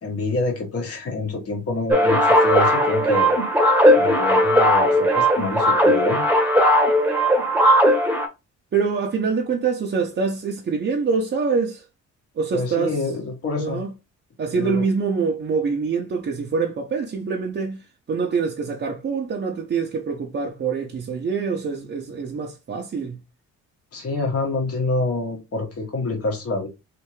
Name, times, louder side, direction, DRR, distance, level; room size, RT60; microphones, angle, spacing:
voice 1, 0.0-3.3 3.9-6.2 12.5-13.8 14.5-14.8 23.9-26.7, left 3 dB, 50° left, 1.7 m, -26 dB
sound 1, 1.9-8.3, equal, 5° right, 1.1 m, -17 dB
voice 2, 8.7-11.8 12.4-13.0 13.6-13.9 14.4-23.2, right 5 dB, 40° right, 0.8 m, -25 dB
3.3 x 2.9 x 3.2 m
cardioid pair, 90°, 30 cm